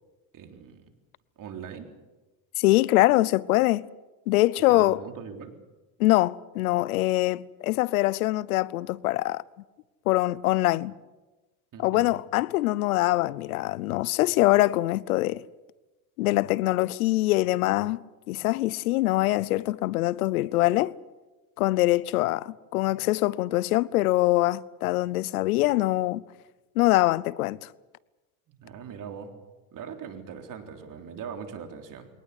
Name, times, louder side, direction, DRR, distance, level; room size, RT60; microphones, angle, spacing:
voice 1, 0.3-0.9 1.4-1.9 4.7-5.5 11.7-12.1 28.5-29.3 29.7-32.1, right 7 dB, 50° right, 3.8 m, -41 dB
voice 2, 2.6-3.8 4.3-5.0 6.0-9.4 10.1-10.9 11.8-15.4 16.2-18.0 18.3-20.9 21.6-26.2 26.8-27.7, left 18 dB, 90° left, 0.8 m, -23 dB
23.0 x 19.0 x 8.3 m
supercardioid pair, 90°, 42 cm